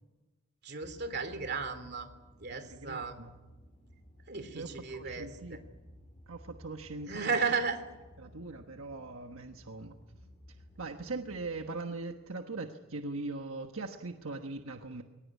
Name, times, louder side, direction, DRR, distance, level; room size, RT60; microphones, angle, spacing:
voice 1, 0.6-2.1 2.4-3.1 4.3-5.6 7.1-7.8, right 5 dB, 50° right, 8 dB, 2.8 m, -34 dB
sound 1, 0.8-11.7, equal, 30° left, 3.7 m, -56 dB
voice 2, 2.5-3.3 4.5-5.6 6.3-7.4 8.2-10.0 10.8-15.0, right 3 dB, 80° right, 5 dB, 1.3 m, -41 dB
22.5 x 19.0 x 9.4 m, 1.2 s
head